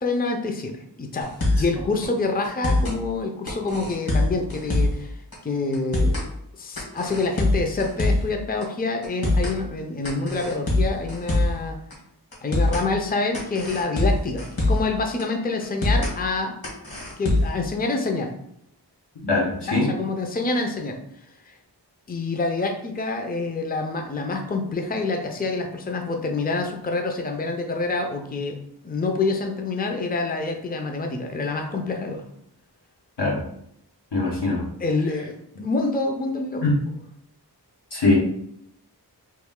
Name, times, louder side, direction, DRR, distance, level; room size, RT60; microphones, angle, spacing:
voice 1, 0.0-5.1 5.4-6.2 6.6-11.8 12.4-16.5 17.2-18.3 19.6-21.0 21.4-21.5 22.1-28.6 28.8-32.2 34.8-35.4 35.6-36.7, left 3 dB, 25° left, 4 dB, 0.5 m, -27 dB
sound 1, 1.2-1.7 2.0-2.1 2.4-3.0 3.5-5.0 5.3-5.4 5.7-6.3 6.8-8.3 8.6-8.7 9.0-9.6 10.0-11.6 11.9-12.0 12.3-12.9 13.3-14.9 15.2-15.3 15.6-16.1 16.6-17.6, left 2 dB, 60° left, 1.4 m, -23 dB
voice 2, 19.3-19.9 33.2-33.4 34.1-34.7 36.6-36.7 37.9-38.1, left 3 dB, 85° left, -4 dB, 1.2 m, -21 dB
3.1 x 2.7 x 3.6 m, 0.72 s
wide cardioid pair, 40°, 40 cm